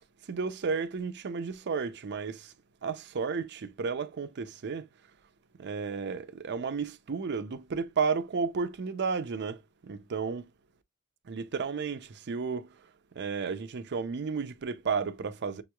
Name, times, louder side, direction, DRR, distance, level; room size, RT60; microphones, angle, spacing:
voice 1, 0.3-2.5 2.8-4.9 5.6-10.5 11.3-12.8 13.2-15.6, right 5 dB, 50° right, 0.5 m, -33 dB
7.0 x 3.0 x 2.2 m
head